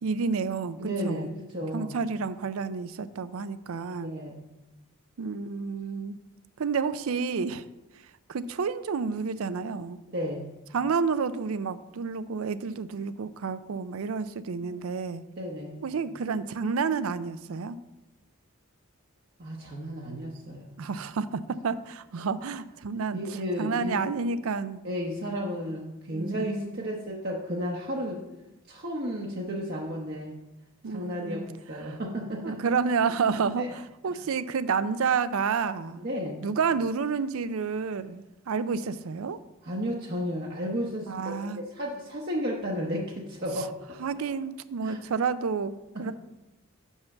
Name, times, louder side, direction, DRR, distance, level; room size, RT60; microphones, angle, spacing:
voice 1, 0.0-1.3 1.7-4.2 5.2-6.2 6.6-7.6 8.3-10.0 10.7-15.2 15.8-17.8 20.8-24.8 26.1-26.8 30.8-31.4 31.8-32.0 32.4-36.0 36.4-39.4 41.1-41.6 44.0-46.1, right 5 dB, 80° right, 14 dB, 0.4 m, -30 dB
voice 2, 0.8-2.0 4.0-4.5 10.1-10.5 14.6-14.8 15.4-15.8 19.4-20.8 23.1-24.1 24.8-28.2 28.7-30.4 30.9-32.6 33.6-33.7 36.0-36.5 39.6-43.7 44.1-44.2 44.8-45.0, equal, 45° right, -2 dB, 0.8 m, -33 dB
5.9 x 5.5 x 6.9 m, 0.99 s
head